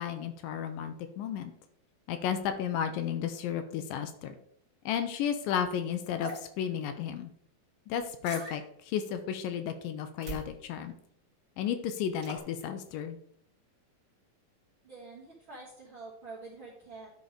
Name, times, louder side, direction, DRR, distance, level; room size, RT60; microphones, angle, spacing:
voice 1, 0.0-1.5 2.1-4.4 4.9-7.3 7.9-10.9 11.6-13.2, left 8 dB, 80° left, 8 dB, 2.2 m, -33 dB
sound 1, 6.2-6.4 8.2-8.6 10.2-10.5 12.2-12.4, right 3 dB, 30° right, 1.9 m, -40 dB
voice 2, 14.8-17.1, right 3 dB, 55° right, -4 dB, 1.5 m, -47 dB
10.5 x 4.0 x 5.0 m, 0.70 s
omnidirectional pair, 4.2 m